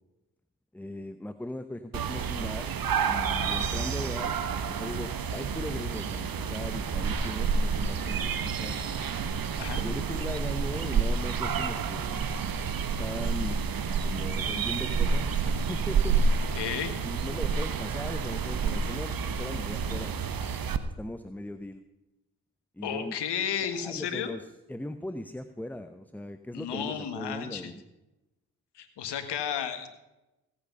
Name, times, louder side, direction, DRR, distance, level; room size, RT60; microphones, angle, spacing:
voice 1, 0.7-2.7 3.1-8.8 9.8-12.2 12.8-13.7 14.0-16.2 17.0-20.5 21.0-21.8 22.8-23.2 23.6-27.8, left 1 dB, 5° left, 10 dB, 0.9 m, -39 dB
sound 1, 1.9-20.8, right 5 dB, 55° right, 1.2 m, -29 dB
voice 2, 16.6-16.9 22.8-24.3 26.5-27.7 28.8-29.9, left 8 dB, 80° left, 8 dB, 1.7 m, -33 dB
17.0 x 8.6 x 5.4 m, 0.97 s
supercardioid pair, 45°, 40 cm